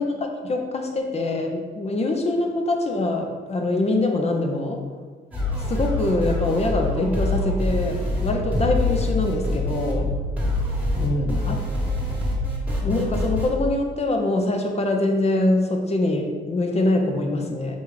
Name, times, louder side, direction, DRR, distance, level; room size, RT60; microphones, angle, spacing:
voice 1, 0.0-4.8 5.7-10.1 10.9-11.7 12.8-17.8, left 2 dB, 30° left, 3 dB, 0.7 m, -24 dB
sound 1, 5.3-13.5, left 1 dB, 5° right, 1.4 m, -25 dB
4.5 x 3.0 x 3.9 m, 1.5 s
cardioid pair, 90°, 20 cm